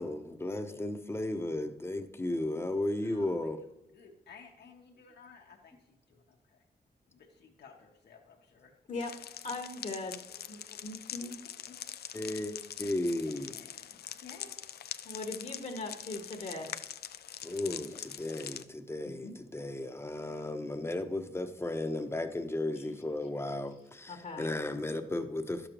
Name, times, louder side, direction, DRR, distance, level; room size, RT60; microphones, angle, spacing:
voice 1, 0.0-3.6 12.1-13.5 17.4-25.7, left 1 dB, 15° left, 0.8 m, -35 dB
voice 2, 3.0-6.6 7.1-8.7 10.3-10.8 11.2-11.3 11.7-11.8 12.1-12.3 13.2-14.5, left 6 dB, 90° left, 1.0 m, -56 dB
sound 1, 9.0-18.6, left 9 dB, 70° left, 0.4 m, -44 dB
voice 3, 9.4-11.4 15.0-16.8 19.0-19.3 24.1-24.8, left 2 dB, 45° left, 1.1 m, -40 dB
12.0 x 6.7 x 3.0 m
cardioid pair, 85°, 17 cm